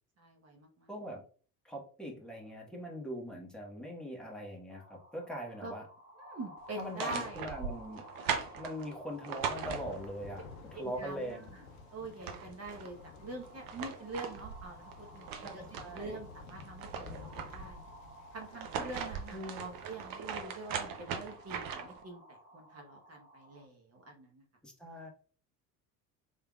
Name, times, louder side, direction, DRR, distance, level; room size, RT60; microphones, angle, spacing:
voice 1, 0.2-0.9 5.6-5.7 6.1-7.5 8.2-8.4 10.7-11.7 11.9-17.8 18.3-24.4, right 2 dB, 30° right, 2 dB, 1.2 m, -45 dB
voice 2, 0.9-1.2 1.6-5.8 6.8-8.0 8.6-10.4 10.7-11.4 15.4-16.2 19.3-19.7 24.6-25.1, equal, ahead, -1 dB, 1.2 m, -41 dB
sound 1, 4.7-23.7, equal, 85° right, 1.2 m, -56 dB
sound 2, 6.7-10.3 11.7-11.8 12.1-12.9 13.4-16.1 16.5-17.8 18.4-22.0, right 7 dB, 45° right, 0.8 m, -40 dB
Thunder, 9.4-20.2, left 4 dB, 70° left, 0.6 m, -52 dB
3.7 x 3.3 x 2.3 m, 0.42 s
figure-of-eight pair, 65°, 46 cm